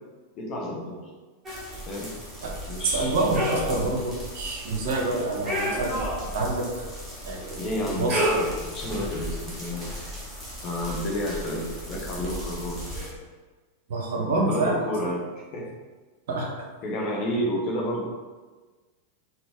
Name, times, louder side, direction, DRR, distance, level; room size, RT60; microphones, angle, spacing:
voice 1, 0.3-1.0 1.9-2.1 2.7-3.3 7.6-10.1 10.6-13.0 14.2-15.7 16.8-18.1, equal, 40° left, -1 dB, 0.8 m, -31 dB
sound 1, 1.4-13.1, equal, ahead, 1.2 m, -33 dB
voice 2, 2.8-6.0 6.3-6.9 7.2-7.7 8.0-8.3 13.9-15.1 16.3-16.7, right 2 dB, 55° right, 0 dB, 0.7 m, -27 dB
4.0 x 2.2 x 3.5 m, 1.3 s
figure-of-eight pair, 90°, 0 cm